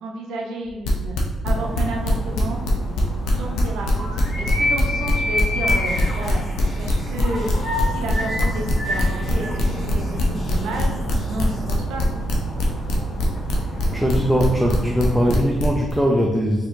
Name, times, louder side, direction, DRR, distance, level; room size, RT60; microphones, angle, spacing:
voice 1, 0.0-1.2 1.4-2.6 3.3-4.1 4.4-6.4 6.8-7.5 7.8-10.9 11.3-12.1, right 2 dB, 85° right, 1 dB, 0.6 m, -31 dB
sound 1, 0.7-3.0 3.2-15.9, left 2 dB, 85° left, 0.6 m, -24 dB
sound 2, 1.4-15.4, left 1 dB, 50° left, 1.3 m, -29 dB
sound 3, 5.8-11.8, left 1 dB, 30° left, 1.4 m, -40 dB
voice 2, 13.9-16.7, equal, 5° right, -1 dB, 0.4 m, -20 dB
4.4 x 2.8 x 2.6 m, 1.1 s
cardioid pair, 90°, 0 cm